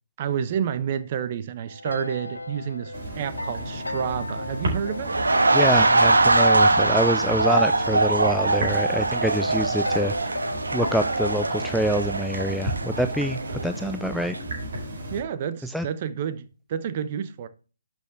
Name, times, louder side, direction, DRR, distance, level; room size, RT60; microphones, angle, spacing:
voice 1, 0.2-5.2 15.1-17.5, right 8 dB, 35° right, 1.0 m, -29 dB
sound 1, 1.7-11.8, left 2 dB, 75° left, 0.8 m, -36 dB
sound 2, 2.9-15.2, right 1 dB, 55° right, 4.5 m, -34 dB
sound 3, 5.0-13.9 14.2-14.4, right 3 dB, 70° right, 1.3 m, -22 dB
voice 2, 5.5-10.1 10.7-14.4 15.6-15.9, equal, ahead, 0.4 m, -26 dB
11.5 x 6.4 x 3.4 m
figure-of-eight pair, 140°, 0 cm